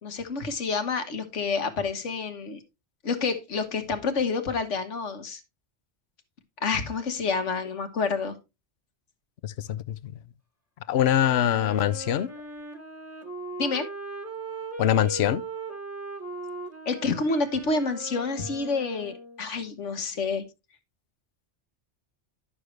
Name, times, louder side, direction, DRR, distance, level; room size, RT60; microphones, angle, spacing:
voice 1, 0.0-2.6 3.0-5.4 6.6-8.4 13.6-13.9 16.8-20.4, left 4 dB, 90° left, 1.6 m, -28 dB
voice 2, 9.4-10.1 10.9-12.3 14.8-15.4, left 11 dB, 70° left, 0.8 m, -24 dB
Wind instrument woodwind instrument, 11.2-19.5, right 2 dB, 10° right, 1.5 m, -38 dB
11.0 x 6.5 x 3.2 m
omnidirectional pair, 1.2 m